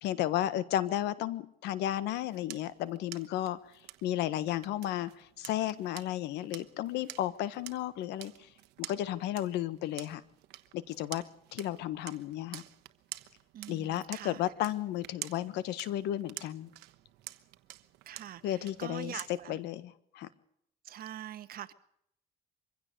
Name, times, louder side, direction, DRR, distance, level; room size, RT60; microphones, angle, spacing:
voice 1, 0.0-3.6 4.0-8.3 8.8-10.2 10.7-11.2 11.5-12.6 13.7-16.7 18.4-19.2 19.5-20.3, left 12 dB, 85° left, 16 dB, 1.4 m, -33 dB
sound 1, 2.0-19.7, right 17 dB, 90° right, 1.2 m, -49 dB
voice 2, 13.5-14.4 18.1-19.6 20.8-21.7, right 11 dB, 60° right, 11 dB, 1.5 m, -44 dB
24.0 x 16.0 x 6.8 m, 0.74 s
cardioid pair, 110°, 17 cm